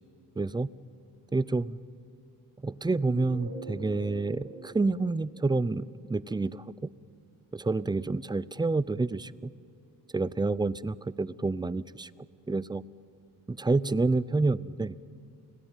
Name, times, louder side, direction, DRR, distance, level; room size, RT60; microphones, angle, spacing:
voice 1, 0.4-0.7 1.3-1.8 2.6-6.6 7.5-9.5 10.1-12.1 12.5-12.8 13.5-14.9, right 3 dB, 10° right, 18 dB, 0.5 m, -28 dB
sound 1, 3.0-6.0, right 2 dB, 60° right, 7.8 m, -44 dB
30.0 x 19.0 x 9.2 m, 2.5 s
cardioid pair, 90°, 38 cm